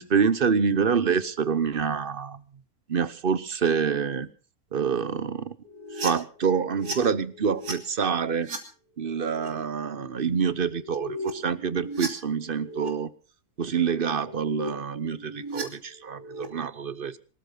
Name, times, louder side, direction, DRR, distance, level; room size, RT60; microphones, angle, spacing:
voice 1, 0.0-2.4 2.9-4.3 4.7-5.5 6.0-8.5 9.0-13.1 13.6-17.2, right 6 dB, 40° right, 16 dB, 1.0 m, -26 dB
sound 1, 5.6-7.7 8.2-8.6 9.1-9.5 10.6-12.9 14.0-14.7 15.0-16.5, right 1 dB, 85° right, 3.6 m, -36 dB
25.5 x 13.5 x 3.9 m, 0.38 s
omnidirectional pair, 1.6 m